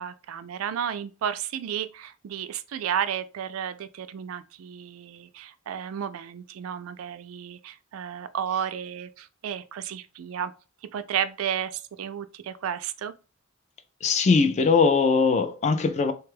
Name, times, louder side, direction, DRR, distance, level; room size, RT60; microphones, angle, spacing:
voice 1, 0.0-10.5 10.9-13.1, right 9 dB, 80° right, 0.3 m, -32 dB
voice 2, 14.0-16.1, left 4 dB, 35° left, 0.3 m, -21 dB
3.3 x 2.2 x 3.2 m
head